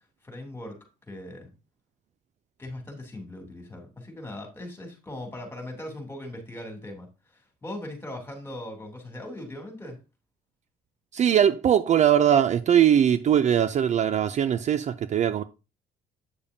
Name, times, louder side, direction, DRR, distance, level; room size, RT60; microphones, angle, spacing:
voice 1, 0.2-0.8 1.1-1.5 2.6-10.0, left 1 dB, 15° left, 2.9 m, -39 dB
voice 2, 11.1-15.4, right 9 dB, 45° right, 0.5 m, -21 dB
8.7 x 7.0 x 2.7 m
cardioid pair, 110°, 17 cm